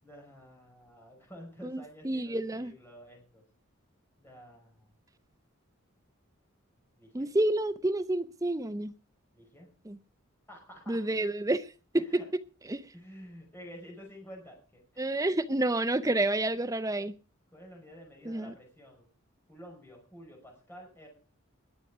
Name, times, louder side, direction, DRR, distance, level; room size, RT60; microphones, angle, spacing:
voice 1, 0.0-3.4 4.2-4.9 7.0-7.3 9.3-9.7 10.5-11.0 12.0-12.3 12.9-15.1 17.5-19.1 19.5-21.1, equal, 10° left, 0 dB, 5.4 m, -50 dB
voice 2, 1.6-2.7 7.1-8.9 9.9-10.0 10.9-11.7 11.9-12.0 12.7-12.8 15.0-17.1 18.2-18.5, right 1 dB, 15° right, 12 dB, 0.6 m, -29 dB
21.0 x 8.3 x 4.9 m, 0.35 s
head